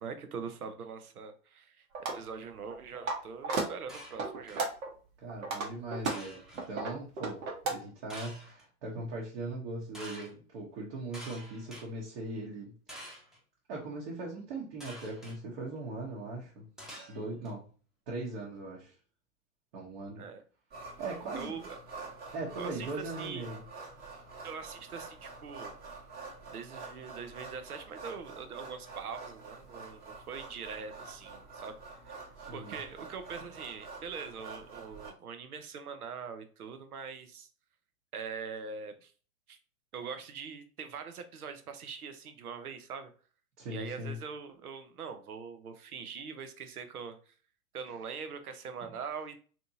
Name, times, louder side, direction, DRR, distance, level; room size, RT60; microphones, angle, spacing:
voice 1, 0.0-1.9 2.1-4.7 20.2-20.4 21.3-21.8 22.5-23.4 24.4-25.7 26.5-31.7 32.0-32.3 32.5-37.5 38.1-39.1 39.5-39.6 39.9-43.1 43.7-47.2 47.7-49.4, right 6 dB, 80° right, 8 dB, 0.7 m, -42 dB
sound 1, 1.9-2.2 2.7-3.2 3.4-3.7 4.2-4.9 5.3-7.7, right 3 dB, 65° right, 1.1 m, -33 dB
sound 2, 3.9-4.7 6.0-6.7 8.1-8.6 9.9-10.3 11.1-11.9 12.9-13.4 14.8-15.4 16.8-17.5, equal, ahead, 0.8 m, -47 dB
voice 2, 5.2-6.4 6.7-13.1 13.7-16.7 17.1-17.6 18.1-18.9 19.7-20.3 21.0-21.6 22.3-23.6 32.4-32.8 43.6-44.2, right 2 dB, 45° right, -3 dB, 1.1 m, -40 dB
sound 3, 20.7-35.1, right 4 dB, 20° right, 1.1 m, -47 dB
3.4 x 2.8 x 2.7 m, 0.39 s
hypercardioid pair, 105°, 44 cm